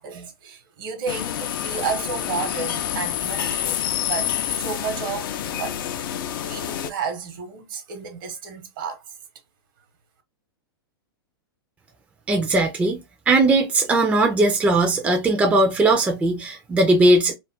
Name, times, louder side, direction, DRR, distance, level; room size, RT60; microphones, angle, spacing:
voice 1, 0.0-5.8 6.4-9.0, right 6 dB, 60° right, 1.0 m, -32 dB
sound 1, 1.1-6.9, left 10 dB, 60° left, 0.5 m, -28 dB
voice 2, 12.3-17.3, right 2 dB, 10° right, 0.5 m, -19 dB
2.4 x 2.1 x 3.4 m
hypercardioid pair, 115°, 13 cm